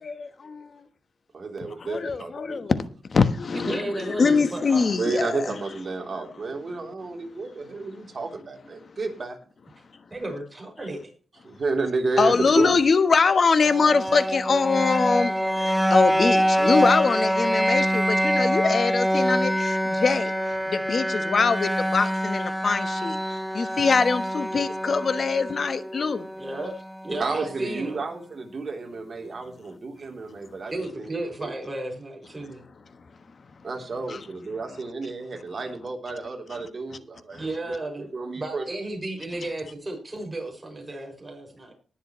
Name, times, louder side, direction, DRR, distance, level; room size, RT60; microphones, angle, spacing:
voice 1, 0.0-0.8 1.8-2.8 3.1-5.6 12.2-20.3 20.7-23.2 23.5-26.3 34.1-34.2 37.3-37.4, left 4 dB, 45° left, 1.2 m, -23 dB
voice 2, 1.3-2.6 5.0-9.4 11.4-12.8 27.2-31.1 31.4-31.5 33.6-38.6, right 3 dB, 40° right, 3.4 m, -31 dB
voice 3, 3.5-4.9 10.1-11.0 26.4-26.7 27.0-28.0 30.7-32.6 37.4-41.7, right 2 dB, 20° right, 6.1 m, -33 dB
sound 1, 13.6-27.6, equal, ahead, 0.4 m, -25 dB
20.0 x 7.3 x 3.2 m
wide cardioid pair, 120°, 0 cm